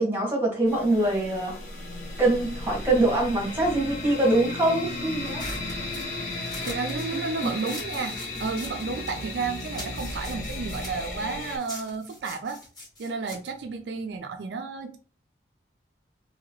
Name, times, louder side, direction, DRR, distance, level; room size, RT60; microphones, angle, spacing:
voice 1, 0.0-1.6 2.2-5.4 7.4-7.5, right 2 dB, 10° right, 1.2 m, -24 dB
sound 1, 0.7-11.6, left 2 dB, 45° left, 0.9 m, -35 dB
sound 2, 5.2-9.3 9.6-14.4, left 1 dB, 25° left, 1.3 m, -42 dB
voice 2, 6.6-12.6 13.0-15.0, right 4 dB, 70° right, 0.4 m, -32 dB
2.9 x 2.8 x 2.9 m
head